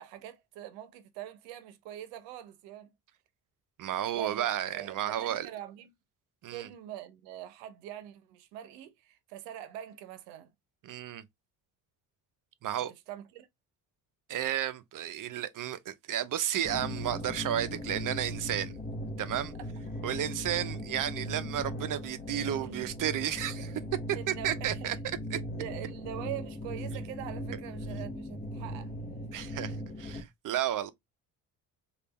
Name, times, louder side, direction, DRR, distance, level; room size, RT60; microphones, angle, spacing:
voice 1, 0.0-2.9 4.1-4.5 4.7-5.9 6.5-10.5 13.1-13.5 22.6-22.9 24.1-24.7 25.3-28.9, right 12 dB, 85° right, 0.8 m, -43 dB
voice 2, 3.8-5.5 6.4-6.7 10.8-11.2 12.6-12.9 14.3-18.8 19.2-19.5 20.0-23.8 24.1-25.0 25.3-25.4 29.3-30.9, right 11 dB, 50° right, 0.6 m, -32 dB
sound 1, 16.6-30.2, equal, 20° left, 0.9 m, -38 dB
3.4 x 2.5 x 2.9 m
supercardioid pair, 60°, 43 cm